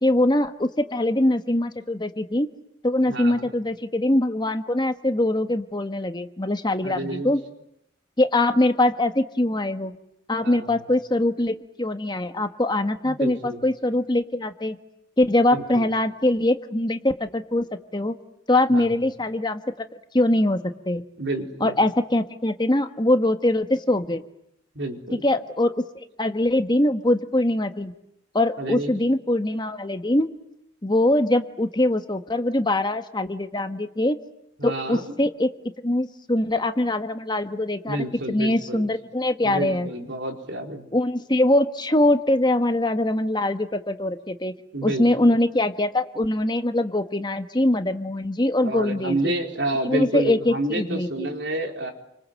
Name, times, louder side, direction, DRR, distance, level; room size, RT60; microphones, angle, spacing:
voice 1, 0.0-2.5 2.8-7.4 8.2-9.9 10.3-14.8 15.2-17.7 17.9-18.1 18.5-19.8 20.1-21.0 21.6-24.2 25.2-27.9 28.3-30.3 30.8-34.2 34.6-35.5 35.8-38.0 38.3-39.9 40.9-44.5 44.8-49.3 49.8-51.3, left 1 dB, 25° left, 8 dB, 1.4 m, -23 dB
voice 2, 3.1-3.5 6.8-7.3 10.4-10.8 13.0-13.6 15.5-15.9 18.7-19.0 21.2-21.8 24.7-25.2 28.6-29.0 34.6-35.2 37.9-38.9 39.4-40.9 44.7-45.4 48.6-51.9, right 1 dB, 65° right, 3 dB, 4.4 m, -29 dB
30.0 x 25.5 x 7.7 m, 0.80 s
head